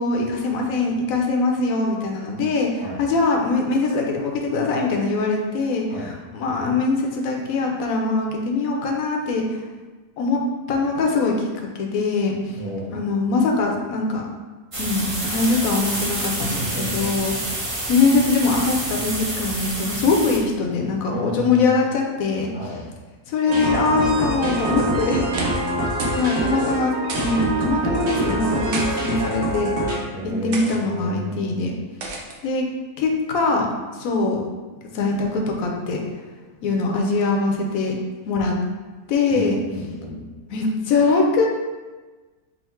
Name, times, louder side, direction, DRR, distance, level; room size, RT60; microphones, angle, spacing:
voice 1, 0.0-9.6 10.2-10.4 10.7-12.4 12.9-14.2 14.8-17.3 17.9-22.5 23.3-25.3 26.2-29.7 30.4-31.8 32.4-32.7 33.0-34.5 34.9-36.0 36.6-38.0 38.3-38.6 39.1-39.6 40.5-41.5, left 3 dB, 70° left, 0 dB, 1.0 m, -22 dB
voice 2, 12.6-12.9 16.4-17.1 21.1-21.7 22.5-22.8 30.1-31.5 39.3-40.2, equal, 35° left, -9 dB, 0.4 m, -31 dB
sound 1, 14.7-20.4, right 1 dB, 35° right, 0.5 m, -28 dB
sound 2, 23.5-30.0, right 1 dB, 70° right, 1.4 m, -25 dB
sound 3, 25.4-25.7 26.0-26.3 26.5-26.6 27.1-27.5 28.4-28.9 29.7-29.9 30.5-30.8 32.0-32.4, right 3 dB, 90° right, 0.4 m, -31 dB
4.2 x 2.1 x 4.2 m, 1.3 s
omnidirectional pair, 1.7 m